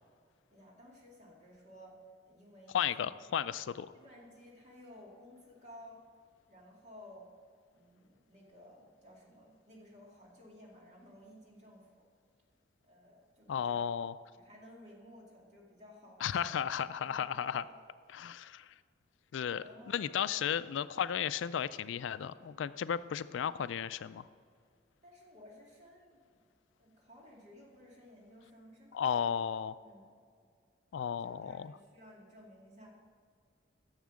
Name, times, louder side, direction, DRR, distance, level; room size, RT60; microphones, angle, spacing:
voice 1, 0.5-2.0 2.3-3.1 3.9-6.0 6.5-7.3 7.7-12.1 12.8-13.9 14.3-17.8 19.6-20.3 25.0-26.4 26.8-29.4 29.8-30.1 31.2-32.9, left 1 dB, 35° right, -3 dB, 2.3 m, -56 dB
voice 2, 2.7-3.9 13.5-14.1 16.2-17.6 18.1-18.7 19.3-24.2 28.9-29.8 30.9-31.8, left 8 dB, 75° left, 15 dB, 0.3 m, -34 dB
10.5 x 7.2 x 6.3 m, 2.1 s
head